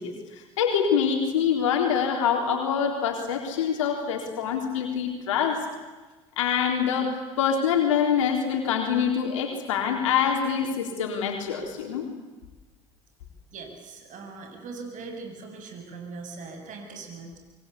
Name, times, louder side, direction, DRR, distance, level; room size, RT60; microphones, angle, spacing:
voice 1, 0.0-5.6 6.4-12.1, left 7 dB, 85° left, 2 dB, 4.0 m, -25 dB
voice 2, 13.5-17.4, right 4 dB, 55° right, 4 dB, 7.8 m, -40 dB
26.0 x 23.0 x 8.4 m, 1.2 s
hypercardioid pair, 70°, 16 cm